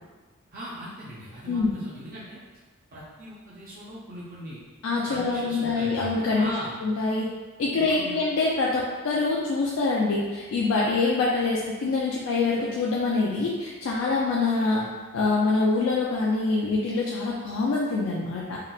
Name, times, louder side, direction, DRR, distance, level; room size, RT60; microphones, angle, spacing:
voice 1, 0.5-2.4 2.9-4.6 5.1-6.7 7.7-8.2, equal, 45° right, -9 dB, 0.5 m, -39 dB
voice 2, 4.8-6.5 6.8-7.3 7.6-14.9 15.1-18.6, left 3 dB, 85° left, -4 dB, 0.4 m, -25 dB
3.7 x 2.1 x 2.3 m, 1.3 s
head